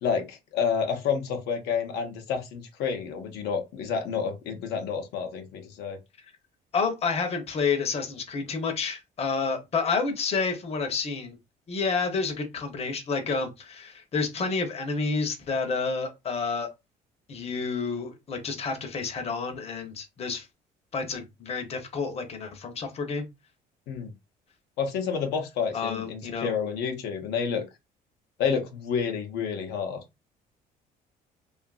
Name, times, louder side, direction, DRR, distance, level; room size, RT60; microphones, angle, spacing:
voice 1, 0.0-6.0 23.9-24.1 24.8-27.7 28.4-30.0, left 6 dB, 85° left, 0.7 m, -29 dB
voice 2, 6.7-11.4 11.7-16.7 17.3-20.5 20.9-23.2 25.7-26.5, left 4 dB, 35° left, 0.7 m, -29 dB
2.7 x 2.4 x 2.3 m
cardioid pair, 110°, 17 cm